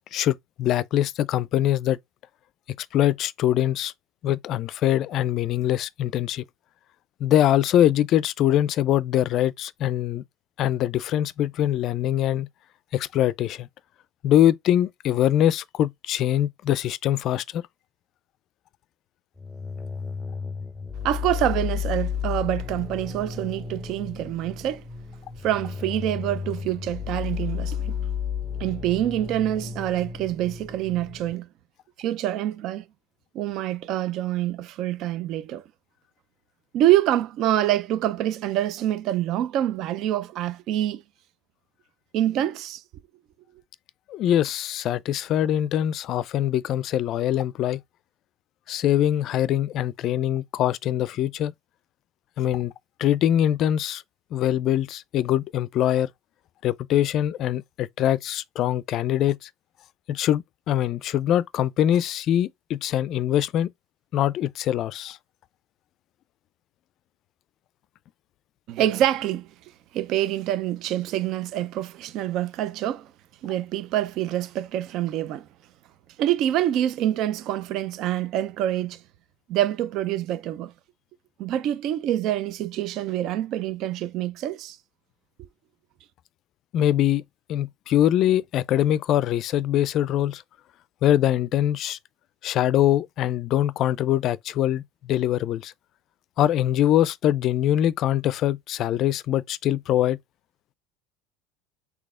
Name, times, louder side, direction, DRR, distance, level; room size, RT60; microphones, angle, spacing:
voice 1, 0.1-2.0 2.8-3.9 4.2-6.4 7.2-10.2 10.6-12.5 12.9-13.7 14.2-17.6 44.1-47.8 48.7-51.5 52.4-52.7 53.0-54.0 54.3-56.1 56.6-59.5 60.1-63.7 64.1-65.2 86.7-87.2 87.5-90.4 91.0-92.0 92.4-95.7 96.4-100.2, left 11 dB, 50° left, 0.4 m, -23 dB
sound 1, 19.4-31.3, left 7 dB, 5° left, 0.7 m, -33 dB
voice 2, 21.0-24.8 25.4-28.0 28.6-31.5 32.0-32.8 33.3-35.6 36.7-41.0 42.1-42.8 68.7-69.5 69.9-73.1 73.4-75.4 76.2-79.0 79.5-80.7 81.4-84.8, right 12 dB, 55° right, 0.4 m, -26 dB
4.0 x 2.8 x 3.6 m
supercardioid pair, 105°, 0 cm